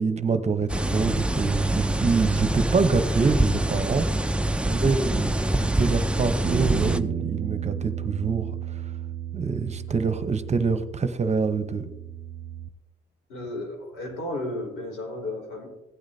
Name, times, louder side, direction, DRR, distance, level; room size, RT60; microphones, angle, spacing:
voice 1, 0.0-4.1 4.7-5.3 5.6-8.8 9.3-11.9, right 4 dB, 35° right, 10 dB, 0.9 m, -26 dB
sound 1, 0.7-7.0, right 1 dB, 5° right, 0.5 m, -25 dB
voice 2, 4.6-5.0 13.3-15.7, left 1 dB, 90° left, 1 dB, 4.2 m, -34 dB
sound 2, 6.4-12.7, right 9 dB, 50° right, 0.5 m, -33 dB
16.5 x 8.8 x 2.7 m, 0.97 s
cardioid pair, 90°, 20 cm